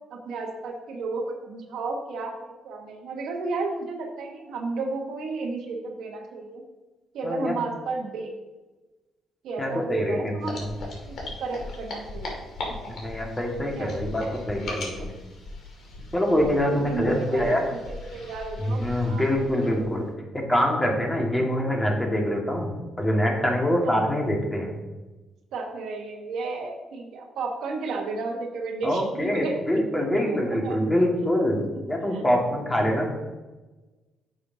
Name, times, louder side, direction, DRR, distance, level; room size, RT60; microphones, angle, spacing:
voice 1, 0.1-6.6 7.1-8.3 9.4-10.6 11.1-12.4 12.7-12.9 13.7-14.3 16.6-17.6 17.9-19.2 19.7-20.1 23.8-24.1 25.5-29.5 29.9-30.8 31.6-31.7 32.1-32.2 32.8-33.0, right 3 dB, 80° right, 2 dB, 1.2 m, -33 dB
voice 2, 7.2-7.5 9.6-10.7 12.9-15.1 16.1-17.6 18.6-20.1 20.5-24.8 28.8-31.6 31.9-33.1, equal, 15° left, 0 dB, 1.7 m, -25 dB
sound 1, 10.4-19.9, left 2 dB, 70° left, 2.1 m, -37 dB
9.4 x 6.3 x 2.7 m, 1.2 s
cardioid pair, 90°, 0 cm